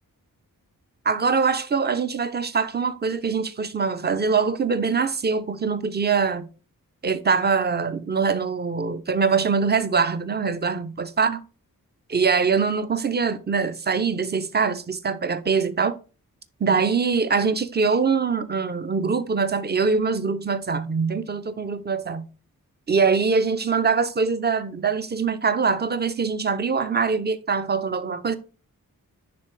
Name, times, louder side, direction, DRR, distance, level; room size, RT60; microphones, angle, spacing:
voice 1, 1.0-6.5 7.0-11.4 12.1-16.0 16.6-22.3 22.9-28.4, right 5 dB, 30° right, 0.6 m, -23 dB
10.0 x 3.4 x 3.2 m
wide cardioid pair, 90°, 35 cm